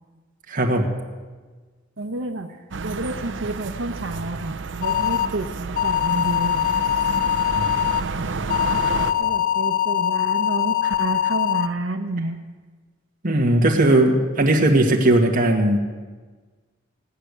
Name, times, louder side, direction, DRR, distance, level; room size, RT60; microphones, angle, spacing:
voice 1, 0.5-0.9 13.2-15.8, right 1 dB, 45° right, 1 dB, 1.9 m, -18 dB
voice 2, 2.0-2.5 2.8-6.7 9.2-12.4, right 2 dB, 85° right, 3 dB, 0.9 m, -29 dB
sound 1, 2.7-9.1, right 4 dB, 65° right, 0.7 m, -30 dB
sound 2, 4.8-5.3 5.8-8.0 8.5-11.7, left 10 dB, 45° left, 0.5 m, -22 dB
17.5 x 6.7 x 9.8 m, 1.4 s
head